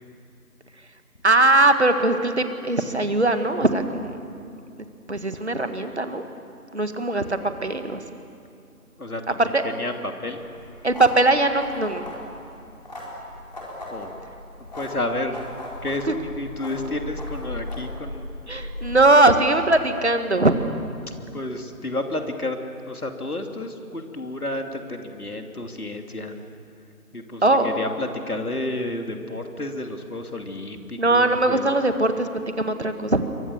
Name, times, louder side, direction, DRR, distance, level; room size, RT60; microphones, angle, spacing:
voice 1, 1.2-4.1 5.1-6.2 6.7-8.0 9.4-9.6 10.8-12.0 16.1-16.2 18.5-20.5 27.4-27.7 31.0-32.3 32.6-33.2, right 2 dB, 45° right, 8 dB, 1.8 m, -20 dB
voice 2, 9.0-10.4 13.9-14.1 14.7-15.5 15.8-18.3 21.3-22.6 22.9-26.4 27.1-31.7, left 2 dB, 75° left, 4 dB, 2.9 m, -31 dB
sound 1, 10.4-19.1, left 1 dB, 30° left, 4.4 m, -37 dB
28.0 x 23.5 x 7.3 m, 2.5 s
figure-of-eight pair, 175°, 45 cm